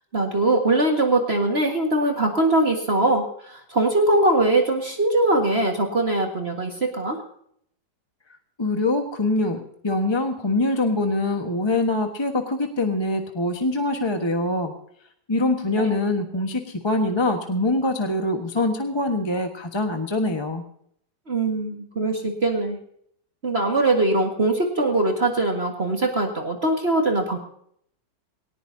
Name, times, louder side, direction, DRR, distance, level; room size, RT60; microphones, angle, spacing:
voice 1, 0.1-7.2 15.8-16.0 21.3-22.8 23.4-27.4, right 2 dB, 35° right, 2 dB, 1.9 m, -22 dB
voice 2, 8.6-14.7 15.3-20.6, left 2 dB, 15° left, 4 dB, 1.2 m, -24 dB
19.0 x 19.0 x 2.8 m, 0.67 s
omnidirectional pair, 2.0 m